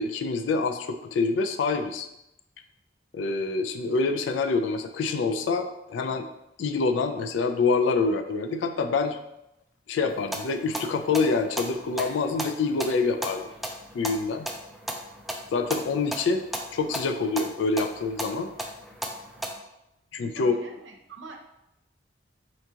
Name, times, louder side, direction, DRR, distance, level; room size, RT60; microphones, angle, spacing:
voice 1, 0.0-2.1 3.1-6.3 6.6-9.2 9.9-13.4 13.9-14.5 15.5-16.4 16.7-18.5 20.1-20.5, left 4 dB, 85° left, 6 dB, 0.3 m, -26 dB
sound 1, 10.1-19.5, equal, ahead, 0.3 m, -36 dB
voice 2, 20.3-21.4, right 4 dB, 85° right, 2 dB, 0.6 m, -44 dB
3.8 x 2.8 x 3.5 m, 0.86 s
head